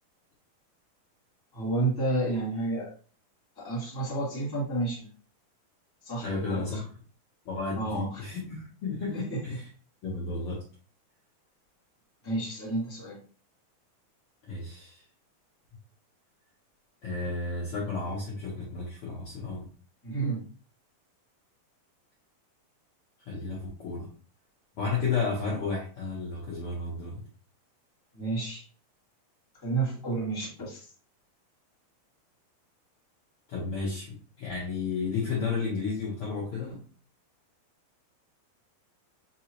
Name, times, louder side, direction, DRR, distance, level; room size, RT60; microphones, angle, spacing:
voice 1, 1.5-2.9 3.5-5.1 6.0-6.6 7.7-8.3 9.1-9.4 12.2-13.2 20.0-20.5 28.1-28.6 29.6-30.9, right 2 dB, 10° left, -7 dB, 1.1 m, -30 dB
voice 2, 6.2-6.9 7.4-9.6 10.0-10.6 14.4-15.0 17.0-19.6 23.3-24.1 24.8-27.2 33.5-36.8, left 4 dB, 85° left, -5 dB, 1.2 m, -32 dB
5.4 x 2.8 x 2.9 m, 0.41 s
omnidirectional pair, 4.2 m